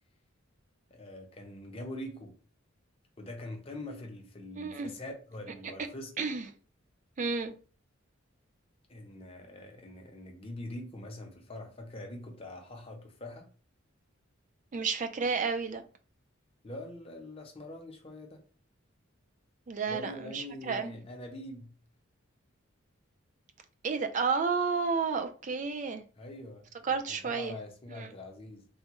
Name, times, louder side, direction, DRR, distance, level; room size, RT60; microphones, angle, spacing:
voice 1, 0.9-2.4 3.2-6.1 8.9-13.5 16.6-18.4 19.9-21.8 26.2-26.7 27.1-28.7, left 1 dB, 30° left, 0.6 m, -44 dB
voice 2, 4.6-4.9 6.2-6.4 7.2-7.5 14.7-15.8 19.7-21.0 23.8-26.0 26.8-27.6 27.9-28.1, right 5 dB, 40° right, 0.3 m, -31 dB
3.4 x 2.1 x 2.9 m
head